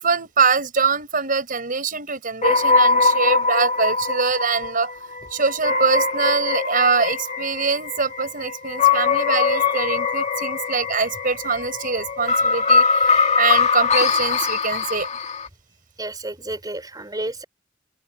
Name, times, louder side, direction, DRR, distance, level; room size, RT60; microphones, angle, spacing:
voice 1, 0.0-15.1, right 5 dB, 45° right, 5.5 m, -23 dB
sound 1, 2.4-15.5, left 4 dB, 40° left, 2.0 m, -21 dB
voice 2, 16.0-17.4, right 1 dB, 20° right, 5.1 m, -31 dB
open air
head